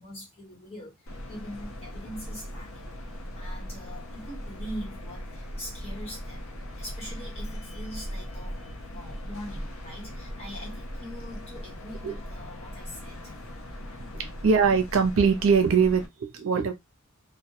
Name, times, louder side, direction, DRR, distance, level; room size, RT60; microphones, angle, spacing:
voice 1, 0.0-3.0 3.3-6.5 6.8-8.6 8.9-13.2 13.9-14.1, equal, 30° left, 1.1 m, -42 dB
sound 1, 1.1-16.1, equal, 75° left, 0.6 m, -39 dB
voice 2, 14.1-16.7, right 5 dB, 65° right, 0.5 m, -22 dB
2.1 x 2.1 x 2.8 m
head